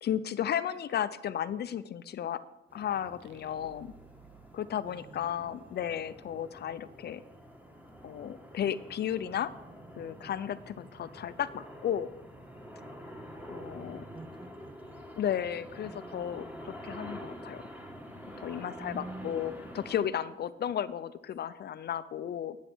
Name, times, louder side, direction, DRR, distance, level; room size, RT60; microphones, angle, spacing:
voice 1, 0.0-2.4 2.7-3.9 4.5-7.2 8.0-9.5 10.0-12.1 13.5-14.0 15.2-17.6 18.4-22.6, left 9 dB, 55° left, 14 dB, 0.6 m, -34 dB
sound 1, 2.7-20.0, equal, 10° right, 1.6 m, -47 dB
sound 2, 3.2-5.8, right 12 dB, 80° right, 0.8 m, -59 dB
voice 2, 4.9-5.8 14.1-15.1 15.8-16.8 18.8-19.7, right 1 dB, 25° right, 12 dB, 0.7 m, -48 dB
10.0 x 7.4 x 6.1 m, 0.95 s
cardioid pair, 90°, 20 cm